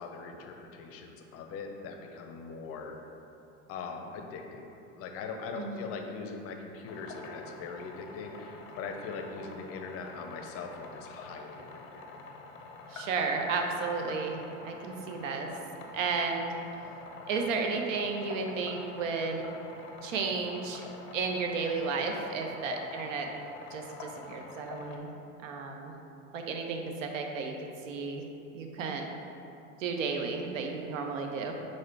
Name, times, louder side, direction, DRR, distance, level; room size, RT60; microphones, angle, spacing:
voice 1, 0.0-3.0 3.7-12.1, left 4 dB, 35° left, 3 dB, 0.5 m, -41 dB
sound 1, 6.9-25.0, left 3 dB, 80° left, 0.6 m, -47 dB
voice 2, 12.9-15.5 15.9-16.5 17.3-19.4 20.0-20.8 21.1-23.3 23.7-25.1 25.4-25.9 26.3-27.5 27.9-28.2 28.5-29.0 29.8-31.7, right 4 dB, 70° right, 3 dB, 0.7 m, -33 dB
4.2 x 2.4 x 4.5 m, 2.8 s
hypercardioid pair, 85°, 40 cm